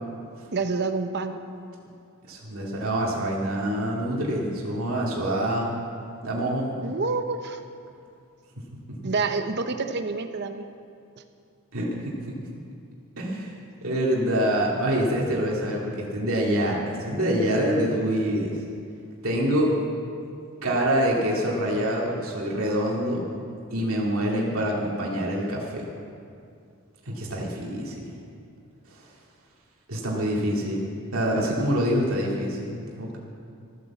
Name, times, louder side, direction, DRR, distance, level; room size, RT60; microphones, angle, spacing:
voice 1, 0.5-1.4 6.8-7.6 9.0-10.7, right 4 dB, 50° right, 7 dB, 0.8 m, -28 dB
voice 2, 2.3-5.7 6.2-6.9 11.7-12.0 13.2-13.5 13.8-18.5 19.2-19.8 20.6-23.2 23.7-25.8 27.1-28.1 29.9-30.8 31.1-33.2, equal, 75° right, -3 dB, 2.2 m, -25 dB
14.0 x 10.0 x 7.1 m, 2.4 s
head